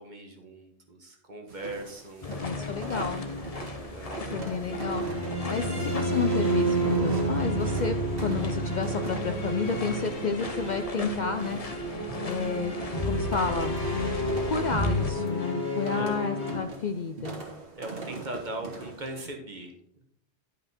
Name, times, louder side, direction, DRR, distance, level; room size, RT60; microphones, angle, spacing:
voice 1, 0.0-2.3 3.9-4.6 5.6-6.0 12.1-12.5 15.9-16.2 17.7-19.7, right 1 dB, 45° right, 2 dB, 1.6 m, -40 dB
sound 1, 1.5-19.2, right 3 dB, 60° right, 2.0 m, -42 dB
sound 2, 2.2-15.1, equal, 35° left, 0.9 m, -34 dB
voice 2, 2.3-3.3 4.3-5.1 5.5-11.6 12.2-12.7 13.0-13.8 14.5-17.5, left 5 dB, 55° left, 8 dB, 0.5 m, -31 dB
sound 3, 4.7-16.6, right 1 dB, 85° left, 3.3 m, -31 dB
11.0 x 5.2 x 4.2 m, 0.71 s
omnidirectional pair, 1.1 m